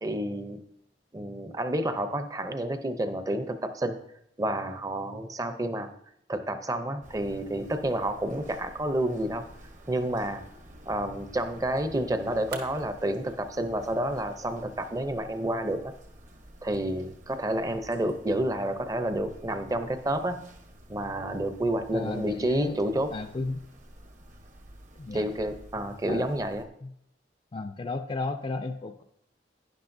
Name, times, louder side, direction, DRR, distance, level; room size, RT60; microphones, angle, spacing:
voice 1, 0.0-0.6 1.1-4.0 4.4-5.9 6.3-9.5 9.9-10.4 10.9-15.9 16.6-20.4 20.9-23.1 25.1-26.7, right 1 dB, 20° right, 8 dB, 0.6 m, -29 dB
sound 1, 7.0-26.7, right 1 dB, 45° right, 1.0 m, -51 dB
sound 2, 10.1-16.1, right 4 dB, 60° right, 1.3 m, -51 dB
voice 2, 21.9-22.8 23.1-23.6 25.0-25.3 26.0-26.3 26.8-26.9 27.5-29.0, left 3 dB, 30° left, 6 dB, 0.4 m, -34 dB
11.5 x 10.0 x 2.6 m, 0.74 s
head